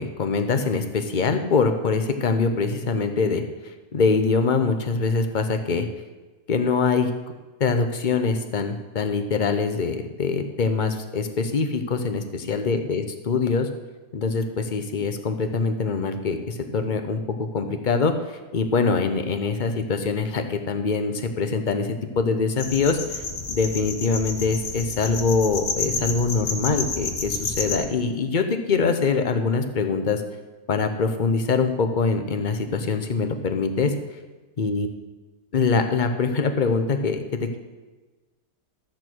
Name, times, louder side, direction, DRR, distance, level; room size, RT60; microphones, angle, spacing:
voice 1, 0.0-3.4 3.9-5.9 6.5-7.1 7.6-13.7 14.1-17.2 17.5-18.1 18.5-23.0 23.5-30.2 30.7-33.9 34.6-34.9 35.5-37.6, left 4 dB, 40° left, 7 dB, 0.8 m, -23 dB
sound 1, 22.6-27.8, left 4 dB, 80° left, 1.7 m, -30 dB
13.0 x 8.3 x 4.6 m, 1.2 s
omnidirectional pair, 1.6 m